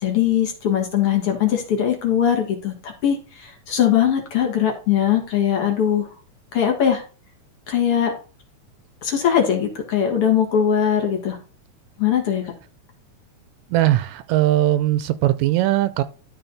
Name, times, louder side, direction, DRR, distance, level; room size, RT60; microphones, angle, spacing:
voice 1, 0.0-6.1 6.5-7.0 7.7-8.1 9.0-11.4 12.0-12.5, left 9 dB, 55° left, 2.4 m, -20 dB
voice 2, 13.7-16.0, right 14 dB, 80° right, 1.8 m, -19 dB
12.5 x 4.2 x 4.0 m
omnidirectional pair, 3.4 m